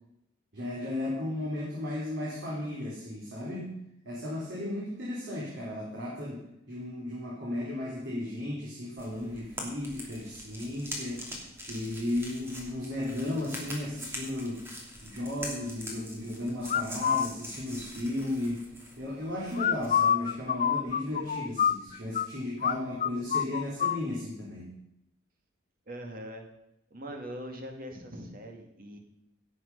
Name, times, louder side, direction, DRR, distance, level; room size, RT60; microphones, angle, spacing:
voice 1, 0.5-3.8 4.0-6.4 6.7-11.3 11.7-14.6 15.0-18.6 19.0-24.7, left 1 dB, 65° right, -5 dB, 3.6 m, -35 dB
sound 1, 9.0-20.0, equal, 15° right, 2.8 m, -43 dB
sound 2, 16.7-17.3 19.6-22.3 22.6-22.8 23.0-24.0, left 8 dB, 40° left, 0.4 m, -26 dB
voice 2, 25.9-26.4 26.9-29.0, equal, 50° right, 3 dB, 2.3 m, -41 dB
17.0 x 7.9 x 5.6 m, 0.81 s
head